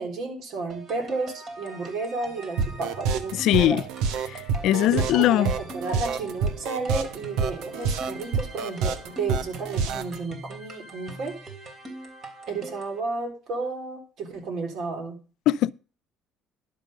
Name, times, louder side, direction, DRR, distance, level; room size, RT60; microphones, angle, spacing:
voice 1, 0.0-3.8 4.9-11.4 12.5-15.2, right 3 dB, 65° right, 3.7 m, -32 dB
sound 1, 0.7-13.0, right 2 dB, 45° right, 3.2 m, -42 dB
sound 2, 2.6-10.2, right 5 dB, 85° right, 1.0 m, -27 dB
voice 2, 3.3-3.8 4.3-5.5 15.5-15.8, left 13 dB, 70° left, 0.4 m, -21 dB
11.5 x 6.6 x 5.2 m
supercardioid pair, 90°, 0 cm